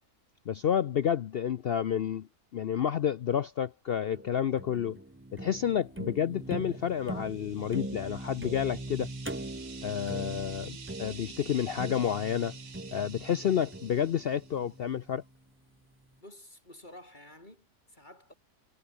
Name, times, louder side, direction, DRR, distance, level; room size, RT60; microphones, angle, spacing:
voice 1, 0.5-2.3 2.5-5.0 5.3-9.1 9.8-12.6 12.9-15.2, left 9 dB, 65° left, 0.6 m, -30 dB
sound 1, 4.1-15.3, right 1 dB, 10° right, 1.0 m, -41 dB
sound 2, 6.9-14.7, right 6 dB, 75° right, 2.4 m, -50 dB
voice 2, 16.2-18.3, left 1 dB, 30° left, 7.5 m, -51 dB
omnidirectional pair, 1.6 m